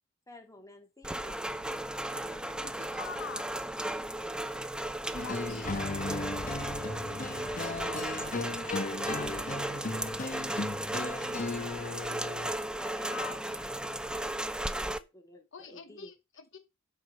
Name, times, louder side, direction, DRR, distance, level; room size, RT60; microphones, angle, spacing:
voice 1, 0.3-1.4 2.1-3.5 5.7-5.9 7.4-10.1 10.7-11.3 12.8-13.2 13.6-16.1, left 2 dB, 15° left, 2.1 m, -52 dB
Rain, 1.0-15.0, right 1 dB, 5° right, 0.6 m, -35 dB
voice 2, 2.6-3.4 5.2-6.2 13.1-13.4 15.5-16.6, left 5 dB, 65° left, 1.1 m, -44 dB
sound 1, 5.1-12.5, left 3 dB, 40° left, 1.1 m, -36 dB
8.2 x 5.8 x 6.9 m
head